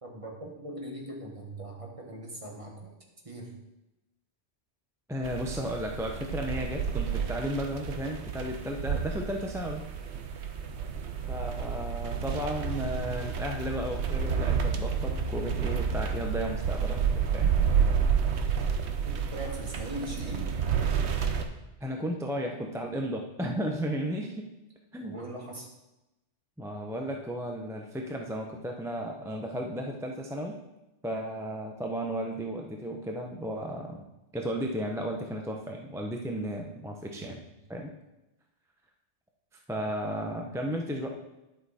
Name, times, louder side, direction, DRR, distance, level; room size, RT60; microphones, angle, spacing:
voice 1, 0.0-2.9 3.2-3.5 19.0-20.5 25.0-25.7 37.1-37.2 39.7-39.8, right 1 dB, 30° right, -1 dB, 1.6 m, -40 dB
voice 2, 5.1-9.9 11.3-17.5 21.8-24.5 24.9-25.2 26.6-30.6 31.0-34.0 34.3-37.4 37.7-37.9 39.7-41.1, equal, 5° right, 1 dB, 0.5 m, -34 dB
sound 1, 5.2-21.5, right 6 dB, 70° right, 1.0 m, -30 dB
11.0 x 6.0 x 4.2 m, 0.96 s
omnidirectional pair, 1.2 m